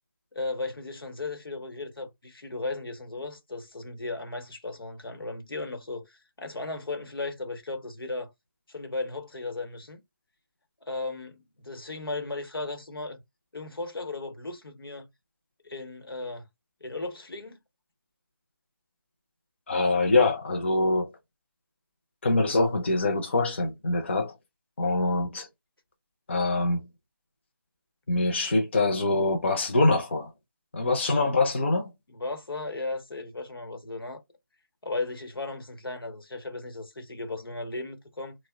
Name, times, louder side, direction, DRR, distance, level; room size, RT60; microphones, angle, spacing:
voice 1, 0.3-8.3 8.7-10.0 10.8-13.2 13.5-15.1 15.6-16.5 16.8-17.6 32.1-34.2 34.8-38.4, left 3 dB, 85° left, 0.9 m, -36 dB
voice 2, 19.7-21.1 22.2-24.3 24.8-25.5 26.3-26.8 28.1-30.3 30.7-31.9, left 2 dB, 30° left, 0.4 m, -24 dB
2.8 x 2.0 x 3.4 m
figure-of-eight pair, 165°, 12 cm